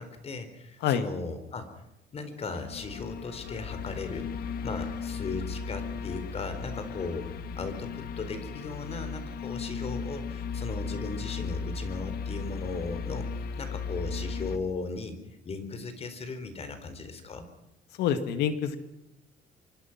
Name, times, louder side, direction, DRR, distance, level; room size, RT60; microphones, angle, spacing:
voice 1, 0.0-1.7 2.1-4.3 4.6-7.3 7.6-15.2 15.4-17.5, left 3 dB, 35° left, 10 dB, 4.0 m, -37 dB
sound 1, 2.5-14.6, left 5 dB, 65° left, 1.6 m, -36 dB
voice 2, 18.0-18.8, left 8 dB, 80° left, 10 dB, 2.1 m, -26 dB
25.5 x 24.0 x 6.0 m, 0.91 s
cardioid pair, 110°, 17 cm